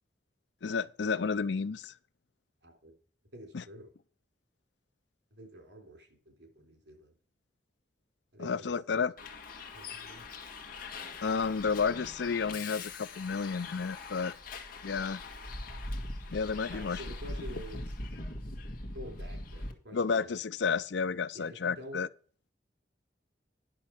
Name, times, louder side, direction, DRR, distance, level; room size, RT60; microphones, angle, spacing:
voice 1, 0.6-1.9 3.5-3.6 8.4-9.1 11.2-14.4 14.8-15.2 16.3-17.0 19.9-22.1, left 5 dB, 80° left, 0.5 m, -31 dB
voice 2, 2.6-2.9 3.3-3.9 5.3-7.1 8.3-8.7 9.0-9.1 9.7-10.3 16.7-17.9 18.9-20.3 21.3-22.0, equal, 85° right, 3.5 m, -48 dB
Bus, 9.2-19.7, left 2 dB, 55° left, 1.5 m, -41 dB
10.0 x 6.5 x 5.9 m
head